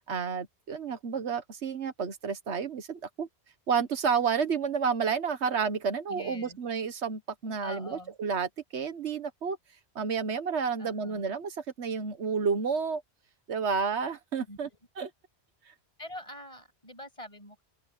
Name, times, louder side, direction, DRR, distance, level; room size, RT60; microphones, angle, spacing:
voice 1, 0.1-3.3 3.7-9.6 9.9-13.0 13.5-14.7 15.0-15.1, right 6 dB, 80° right, 1.4 m, -30 dB
voice 2, 6.1-6.6 7.6-8.1 10.8-11.3 14.5-14.8 16.0-17.6, left 1 dB, 30° left, 7.4 m, -45 dB
open air
omnidirectional pair, 1.1 m